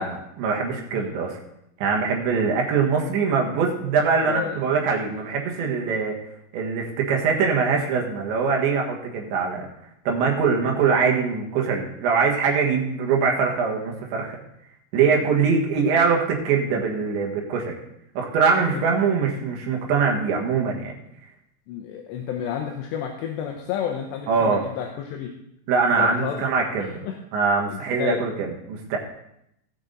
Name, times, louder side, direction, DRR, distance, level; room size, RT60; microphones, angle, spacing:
voice 1, 0.0-1.4 1.8-6.2 6.5-9.7 10.1-14.4 14.9-17.8 18.2-20.9 24.3-24.6 25.7-27.0 27.3-29.0, right 5 dB, 70° right, 0 dB, 3.7 m, -23 dB
voice 2, 4.3-4.6 5.6-5.8 15.2-15.3 18.7-18.8 21.7-25.3 26.0-26.5 26.8-27.2 27.7-28.2, left 9 dB, 75° left, 2 dB, 2.8 m, -31 dB
18.0 x 6.0 x 3.9 m, 0.79 s
omnidirectional pair, 5.5 m